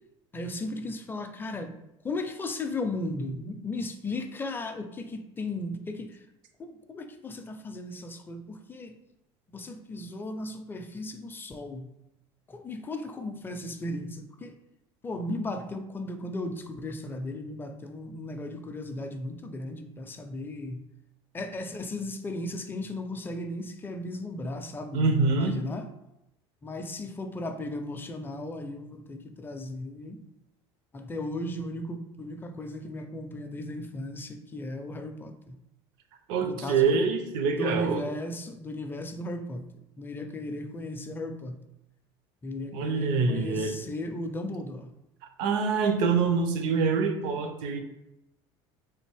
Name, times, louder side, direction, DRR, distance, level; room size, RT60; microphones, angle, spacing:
voice 1, 0.3-1.7 2.0-6.3 6.6-9.0 9.5-11.9 12.5-14.6 15.0-20.9 21.3-25.9 26.6-30.2 30.9-35.6 36.4-37.0 37.6-41.6 42.4-44.9, left 2 dB, 15° left, 6 dB, 0.4 m, -36 dB
voice 2, 24.9-25.6 36.3-38.0 42.7-43.8 45.4-47.8, right 4 dB, 75° right, 7 dB, 0.6 m, -25 dB
3.4 x 2.5 x 3.3 m, 0.88 s
supercardioid pair, 100°, 13 cm